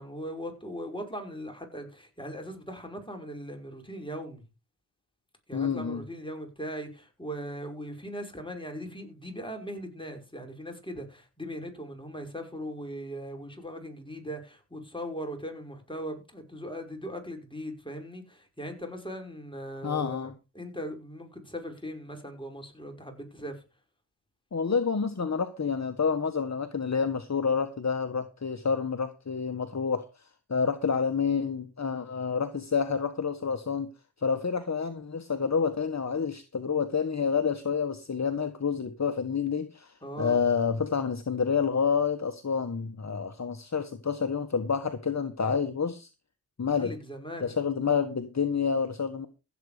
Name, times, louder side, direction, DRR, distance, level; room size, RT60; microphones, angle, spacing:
voice 1, 0.0-4.4 5.5-23.6 40.0-40.4 46.7-47.6, equal, 10° left, 5.8 m, -39 dB
voice 2, 5.5-6.0 19.8-20.3 24.5-30.1 30.5-33.9 34.2-46.1 46.6-46.9 47.4-49.3, left 6 dB, 40° left, 1.4 m, -28 dB
15.5 x 8.5 x 5.1 m
cardioid pair, 60°, 43 cm